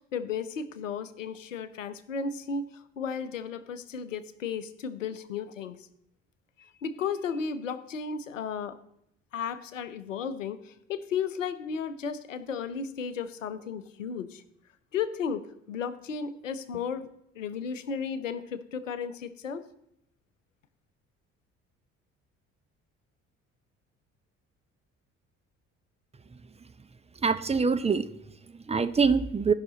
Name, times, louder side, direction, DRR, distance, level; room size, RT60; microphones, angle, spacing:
voice 1, 0.1-5.8 6.6-8.8 9.3-14.4 14.9-17.1 17.4-19.6, left 6 dB, 90° left, 13 dB, 0.5 m, -34 dB
voice 2, 27.2-29.5, right 5 dB, 15° right, 11 dB, 0.6 m, -25 dB
15.0 x 5.7 x 3.8 m, 0.77 s
figure-of-eight pair, 50°, 37 cm